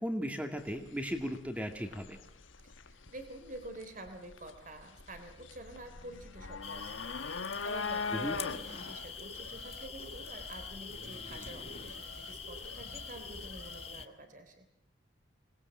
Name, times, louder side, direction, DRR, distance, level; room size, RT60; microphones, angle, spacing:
voice 1, 0.0-2.2 8.1-8.4, equal, 5° right, 5 dB, 2.5 m, -36 dB
sound 1, 0.6-13.7, left 4 dB, 75° left, 1.3 m, -43 dB
voice 2, 2.6-14.7, right 1 dB, 40° right, 7 dB, 3.3 m, -48 dB
sound 2, 6.6-14.1, left 6 dB, 30° left, 1.2 m, -44 dB
Alarm, 8.2-13.9, right 2 dB, 65° right, 2.1 m, -53 dB
26.5 x 20.5 x 7.5 m, 0.65 s
head